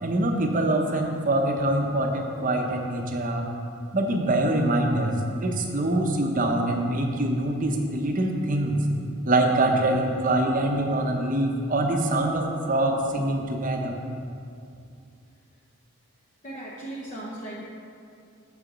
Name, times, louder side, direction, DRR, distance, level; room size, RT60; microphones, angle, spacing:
voice 1, 0.0-3.4 3.9-5.2 5.4-8.8 9.3-14.0, right 1 dB, 40° right, 2 dB, 0.7 m, -24 dB
voice 2, 16.4-17.6, right 1 dB, 35° left, -6 dB, 0.8 m, -37 dB
6.6 x 4.9 x 6.2 m, 2.4 s
head